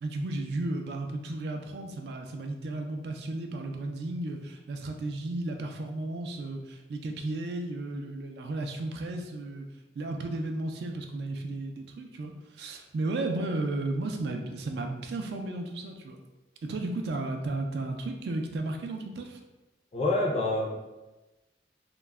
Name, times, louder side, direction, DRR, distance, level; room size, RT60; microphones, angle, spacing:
voice 1, 0.0-9.7 10.0-16.2 16.6-19.4, right 2 dB, 65° right, 4 dB, 0.3 m, -34 dB
voice 2, 19.9-20.7, left 2 dB, 35° left, -1 dB, 0.3 m, -27 dB
2.2 x 2.0 x 3.3 m, 1.1 s
head